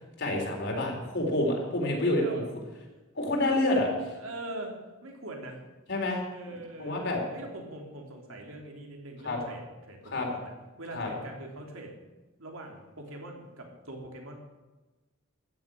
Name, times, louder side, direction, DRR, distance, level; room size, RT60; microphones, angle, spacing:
voice 1, 0.2-2.4 3.1-4.1 5.9-6.2 6.8-7.2 9.2-9.4 10.1-10.3 10.9-11.1, left 1 dB, 60° left, 1 dB, 3.8 m, -28 dB
voice 2, 1.9-2.9 4.2-4.8 5.0-5.6 6.3-7.1 7.3-10.5 10.8-11.9 12.4-14.4, right 1 dB, 90° right, 1 dB, 3.2 m, -43 dB
14.5 x 7.1 x 9.9 m, 1.2 s
head